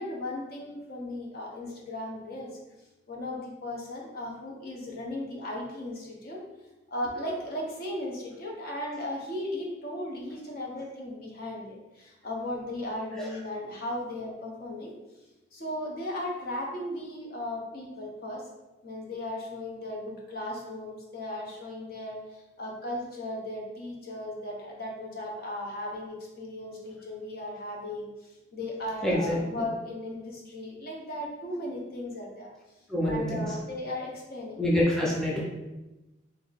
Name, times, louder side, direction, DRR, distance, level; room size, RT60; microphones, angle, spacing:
voice 1, 0.0-2.5 3.1-6.4 6.9-14.9 15.5-18.5 18.8-32.5 33.0-34.6, left 1 dB, 55° left, -2 dB, 0.9 m, -36 dB
voice 2, 29.0-29.6 32.9-33.4 34.6-35.4, left 1 dB, 5° left, -5 dB, 0.6 m, -26 dB
3.5 x 2.8 x 4.1 m, 1.0 s
head